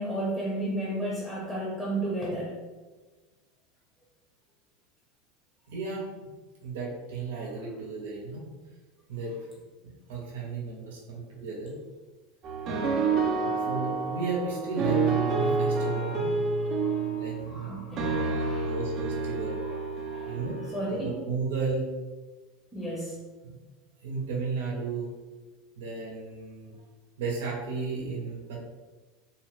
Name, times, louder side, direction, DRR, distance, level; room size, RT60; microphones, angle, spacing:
voice 1, 0.0-2.6 17.5-18.8 19.6-19.8 20.0-20.4 20.7-21.1 22.7-23.2, right 1 dB, ahead, -5 dB, 0.6 m, -33 dB
voice 2, 5.7-6.3 6.6-8.5 9.1-9.3 10.1-11.7 13.4-16.3 17.1-17.7 18.0-19.6 20.3-20.6 20.9-21.9 23.4-23.6 24.0-25.1 25.8-26.7 27.2-28.6, right 3 dB, 90° right, -3 dB, 0.7 m, -34 dB
sound 1, 12.4-21.0, right 4 dB, 45° right, 0.4 m, -29 dB
2.7 x 2.0 x 3.1 m, 1.3 s
supercardioid pair, 125°, 0 cm